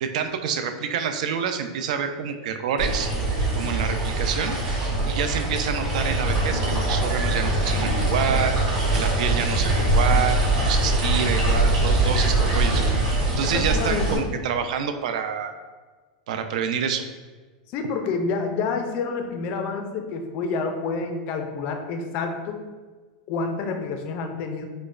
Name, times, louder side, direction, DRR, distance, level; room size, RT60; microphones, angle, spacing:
voice 1, 0.0-3.1 3.5-4.6 5.1-8.6 8.9-15.5 16.3-17.0, right 7 dB, 65° right, 8 dB, 0.3 m, -27 dB
sound 1, 2.8-14.2, right 2 dB, 45° right, 1.1 m, -23 dB
voice 2, 13.5-14.3 17.7-22.6 23.3-24.6, left 4 dB, 35° left, 5 dB, 0.4 m, -28 dB
5.0 x 2.1 x 2.4 m, 1.4 s
supercardioid pair, 170°, 4 cm